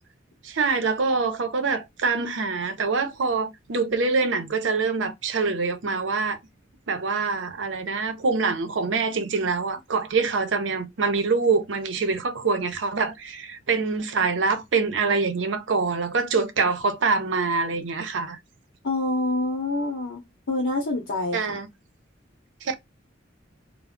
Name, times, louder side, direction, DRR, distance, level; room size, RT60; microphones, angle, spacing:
voice 1, 0.4-6.4 6.9-18.4 21.3-21.7 22.6-22.7, right 4 dB, 70° right, 0.6 m, -25 dB
voice 2, 18.8-21.4, left 2 dB, 85° left, 0.7 m, -26 dB
2.2 x 2.0 x 3.5 m
head